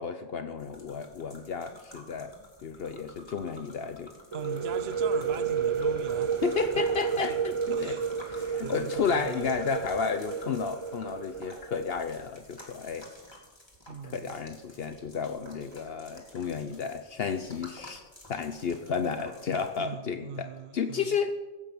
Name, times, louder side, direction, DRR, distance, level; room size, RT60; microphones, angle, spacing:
voice 1, 0.0-2.3 2.6-4.1 6.4-8.0 8.3-13.1 14.0-18.0 18.3-21.3, left 6 dB, 60° left, 9 dB, 1.0 m, -32 dB
sound 1, 0.6-19.9, left 1 dB, 25° left, 2.8 m, -51 dB
sound 2, 4.3-11.9, right 6 dB, 35° right, 0.5 m, -31 dB
voice 2, 4.3-6.3 7.1-7.4 7.7-8.2 8.6-9.5 13.9-14.4 19.8-21.2, right 7 dB, 65° right, 12 dB, 1.0 m, -41 dB
15.0 x 8.3 x 6.9 m, 1.2 s
omnidirectional pair, 1.1 m